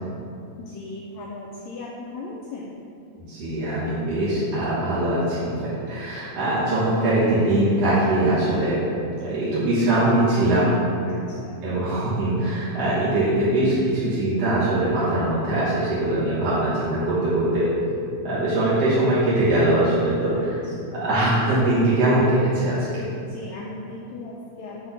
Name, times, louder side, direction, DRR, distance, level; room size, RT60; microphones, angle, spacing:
voice 1, 0.6-2.8 11.0-11.6 20.3-21.1 23.3-24.9, left 2 dB, 75° left, -2 dB, 1.7 m, -38 dB
voice 2, 3.2-8.8 9.2-10.8 11.6-17.7 18.2-20.6 21.0-23.1, right 1 dB, 60° right, -12 dB, 2.4 m, -22 dB
8.2 x 3.6 x 5.6 m, 2.6 s
omnidirectional pair, 3.5 m